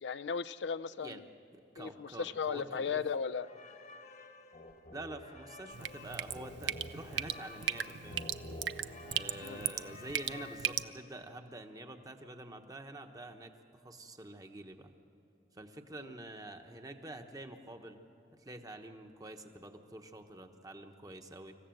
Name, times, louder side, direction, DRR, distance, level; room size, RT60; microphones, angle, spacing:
voice 1, 0.0-1.3 1.8-3.5 9.4-9.6 16.0-16.1, left 6 dB, 80° left, 13 dB, 0.5 m, -36 dB
voice 2, 1.5-3.0 4.9-8.2 9.1-14.9 15.5-18.1 18.4-21.6, right 1 dB, 20° right, 6 dB, 1.1 m, -47 dB
sound 1, 3.3-11.2, left 2 dB, 45° left, 1.2 m, -50 dB
Drip, 5.7-10.8, right 10 dB, 80° right, 0.6 m, -38 dB
26.5 x 15.0 x 7.8 m, 2.9 s
head